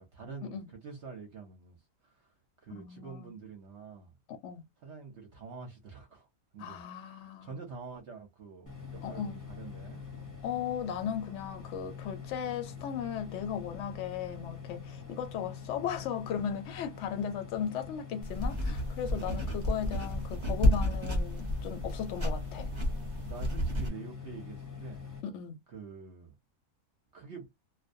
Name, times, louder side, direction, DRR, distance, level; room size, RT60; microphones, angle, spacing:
voice 1, 0.0-2.3 2.6-4.2 4.8-6.3 6.5-10.0 19.1-19.5 23.2-25.0 25.7-26.3 27.1-27.4, right 5 dB, 55° right, 0.9 m, -47 dB
voice 2, 2.7-3.3 4.3-4.6 6.6-7.6 9.0-9.4 10.4-22.7 25.2-25.6, left 8 dB, 60° left, 0.8 m, -37 dB
sound 1, 8.7-25.2, left 6 dB, 20° left, 0.6 m, -45 dB
sound 2, 18.2-23.9, left 1 dB, 30° right, 0.6 m, -31 dB
2.4 x 2.1 x 2.5 m
omnidirectional pair, 1.6 m